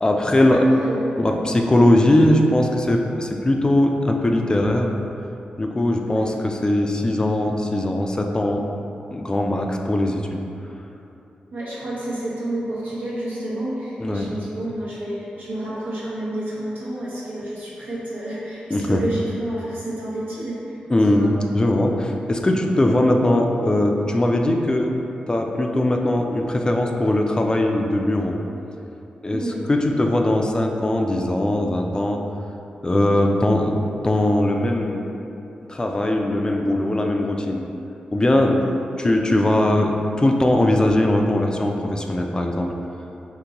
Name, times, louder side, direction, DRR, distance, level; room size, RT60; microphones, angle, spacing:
voice 1, 0.0-0.6 1.2-4.9 5.6-8.6 9.1-10.4 14.0-14.3 18.7-19.0 20.9-24.9 25.3-28.4 29.2-32.2 32.8-33.8 34.0-35.0 35.7-37.7 38.1-38.6 39.0-42.7, left 1 dB, 25° left, 2 dB, 0.3 m, -20 dB
voice 2, 0.5-1.2 6.0-6.3 11.5-20.8 21.0-21.3 29.3-29.6, right 1 dB, 85° right, -7 dB, 0.8 m, -29 dB
3.7 x 2.6 x 2.8 m, 2.8 s
cardioid pair, 55°, 3 cm